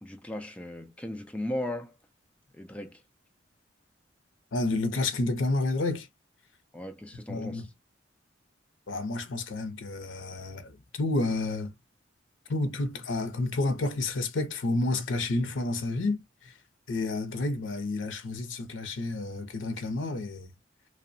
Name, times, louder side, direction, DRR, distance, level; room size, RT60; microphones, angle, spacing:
voice 1, 0.0-2.0 2.5-3.0 6.7-7.7, left 1 dB, 5° left, 0.3 m, -37 dB
voice 2, 4.5-6.1 7.3-7.7 8.9-11.7 12.5-16.5 16.9-20.5, left 2 dB, 90° left, 0.6 m, -30 dB
2.7 x 2.1 x 2.5 m
head